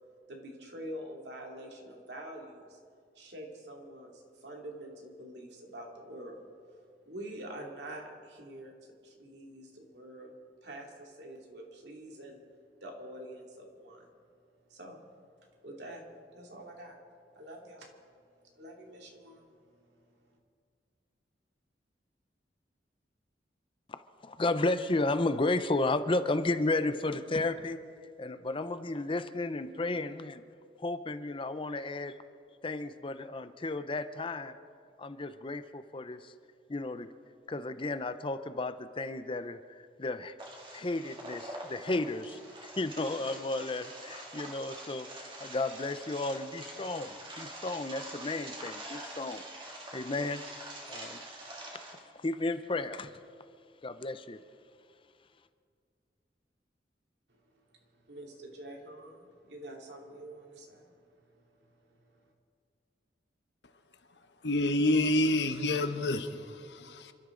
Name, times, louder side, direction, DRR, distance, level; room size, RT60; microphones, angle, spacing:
voice 1, 0.3-2.8 3.1-6.8 7.1-8.7 9.0-10.4 10.6-12.4 12.8-14.1 14.7-15.0 15.6-16.0 16.3-17.0 17.3-17.9 18.5-20.4 57.4-62.3, right 1 dB, 75° right, 0 dB, 2.7 m, -46 dB
voice 2, 24.2-27.8 28.2-30.4 30.8-32.2 32.6-34.6 35.0-36.3 36.7-37.1 37.5-40.3 40.7-49.4 49.9-50.4 50.9-51.2 52.2-53.2 53.8-54.4, left 2 dB, 30° left, 11 dB, 0.6 m, -33 dB
sound 1, 40.4-52.0, right 1 dB, 30° right, 2.6 m, -45 dB
voice 3, 64.4-67.1, left 1 dB, 80° left, 8 dB, 1.1 m, -28 dB
28.0 x 13.0 x 3.9 m, 2.2 s
head